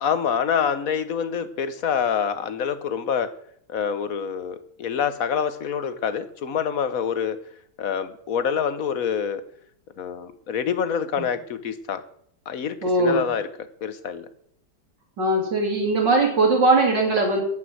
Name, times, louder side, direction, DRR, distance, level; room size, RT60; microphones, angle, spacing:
voice 1, 0.0-3.3 3.7-7.4 7.8-9.4 10.0-12.0 12.5-13.5 13.8-14.3, left 7 dB, 55° left, 12 dB, 1.4 m, -26 dB
voice 2, 12.8-13.2 15.2-17.4, right 2 dB, 85° right, 0 dB, 4.0 m, -20 dB
9.6 x 9.2 x 7.8 m, 0.68 s
omnidirectional pair, 1.9 m